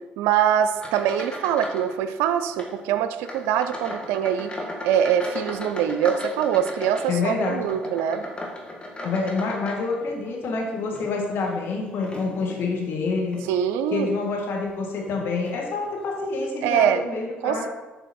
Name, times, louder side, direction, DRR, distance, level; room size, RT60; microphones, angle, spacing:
voice 1, 0.2-4.5 4.8-8.2 13.5-14.2 16.6-17.0 17.4-17.7, right 9 dB, 80° right, 10 dB, 0.4 m, -23 dB
sound 1, 0.7-1.9 2.2-2.7 3.2-10.3 10.8-12.6 13.2-13.5 14.0-14.2 15.0-15.2 15.5-15.6, left 1 dB, 25° left, 1.5 m, -37 dB
voice 2, 7.1-7.6 9.0-13.4 13.9-17.7, left 3 dB, 65° left, 0 dB, 1.6 m, -27 dB
7.0 x 3.8 x 4.3 m, 1.2 s
supercardioid pair, 65°, 4 cm